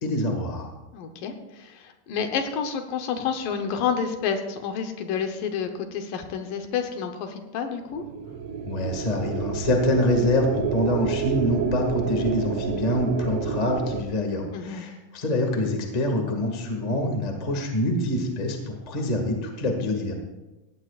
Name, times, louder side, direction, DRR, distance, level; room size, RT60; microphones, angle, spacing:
voice 1, 0.0-0.7 8.7-20.1, left 1 dB, 20° left, 2 dB, 1.0 m, -25 dB
voice 2, 0.9-8.0 14.5-14.8, left 7 dB, 75° left, 6 dB, 2.6 m, -29 dB
sound 1, 7.9-14.0, right 6 dB, 85° right, 1.2 m, -29 dB
17.5 x 16.0 x 2.5 m, 1.1 s
omnidirectional pair, 4.1 m